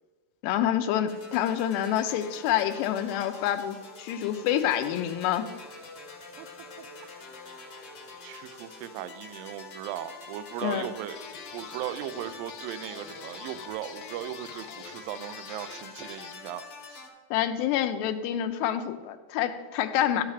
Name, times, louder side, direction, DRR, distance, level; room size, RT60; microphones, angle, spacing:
voice 1, 0.4-5.5 10.6-10.9 17.3-20.2, left 11 dB, 90° left, 8 dB, 2.9 m, -27 dB
sound 1, 1.1-17.1, left 3 dB, 55° left, 1.2 m, -46 dB
voice 2, 6.8-7.1 8.2-11.2 11.5-17.1, right 12 dB, 85° right, 12 dB, 2.0 m, -38 dB
sound 2, 11.2-16.5, left 7 dB, 75° left, 2.3 m, -46 dB
12.5 x 8.9 x 4.9 m, 1.4 s
omnidirectional pair, 4.8 m